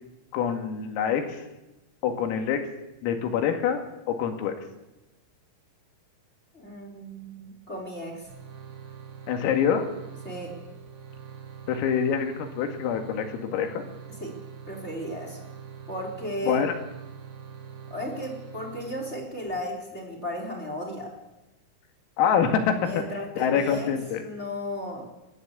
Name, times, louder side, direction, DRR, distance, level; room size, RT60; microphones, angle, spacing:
voice 1, 0.3-1.5 2.0-2.7 3.0-4.6 9.3-9.9 11.7-13.8 16.5-16.8 22.2-23.0 23.4-24.2, left 7 dB, 85° left, 5 dB, 4.9 m, -25 dB
voice 2, 6.5-8.3 10.2-10.6 14.2-14.4 14.7-15.4 15.9-16.6 17.9-21.2 22.7-23.9 24.2-25.0, equal, 15° left, 2 dB, 3.8 m, -35 dB
sound 1, 8.2-19.6, right 7 dB, 75° right, 6.0 m, -44 dB
29.5 x 13.0 x 8.4 m, 1.0 s
omnidirectional pair, 5.9 m